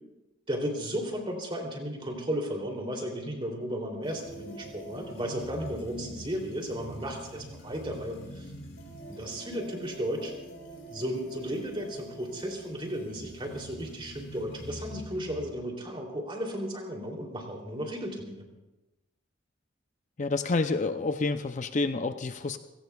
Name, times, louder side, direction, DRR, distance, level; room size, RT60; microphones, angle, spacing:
voice 1, 0.5-8.5 9.1-10.3 10.9-18.4, equal, 25° right, 1 dB, 3.0 m, -34 dB
sound 1, 4.0-15.6, equal, 65° left, 3.9 m, -45 dB
voice 2, 20.2-22.6, left 3 dB, 40° left, 8 dB, 0.6 m, -28 dB
29.5 x 17.5 x 2.4 m, 1.0 s
head